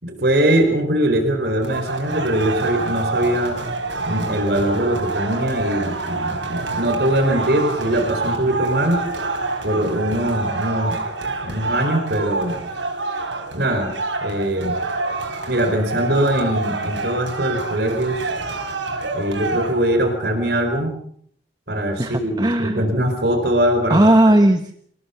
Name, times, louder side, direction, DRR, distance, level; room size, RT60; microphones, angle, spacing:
voice 1, 0.0-3.6 4.0-9.0 9.6-10.9 11.4-12.5 13.5-13.9 14.2-14.8 15.5-18.3 19.1-20.9 21.7-24.1, right 1 dB, 60° right, 5 dB, 4.4 m, -21 dB
sound 1, 1.6-19.9, right 3 dB, 85° right, 5.3 m, -27 dB
voice 2, 22.0-22.9 23.9-24.7, right 1 dB, 20° right, 8 dB, 1.2 m, -16 dB
28.0 x 18.0 x 7.1 m, 0.64 s
head